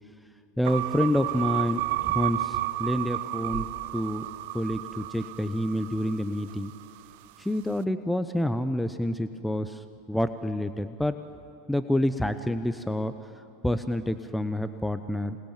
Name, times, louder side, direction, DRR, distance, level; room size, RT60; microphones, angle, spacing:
voice 1, 0.6-4.3 4.5-6.7 7.4-11.2 11.7-15.4, left 1 dB, 5° left, 10 dB, 0.9 m, -28 dB
sound 1, 0.7-7.0, right 18 dB, 60° right, 0.6 m, -32 dB
27.0 x 20.5 x 9.1 m, 2.4 s
hypercardioid pair, 85°, 0 cm